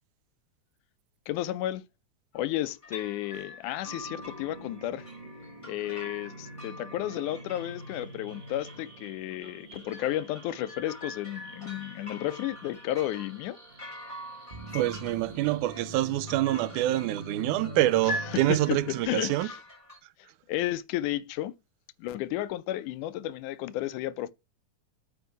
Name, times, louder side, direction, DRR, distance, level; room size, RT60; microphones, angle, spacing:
voice 1, 1.3-1.9 2.3-5.1 5.6-13.6 18.1-19.6 20.5-21.6 22.0-24.3, left 14 dB, 85° left, 2.1 m, -33 dB
sound 1, 2.3-2.6 2.8-20.0, left 1 dB, 10° left, 4.6 m, -44 dB
sound 2, 3.8-19.0, right 1 dB, 35° right, 0.7 m, -45 dB
voice 2, 14.7-19.5, right 15 dB, 85° right, 2.1 m, -26 dB
9.1 x 5.2 x 4.7 m
omnidirectional pair, 3.5 m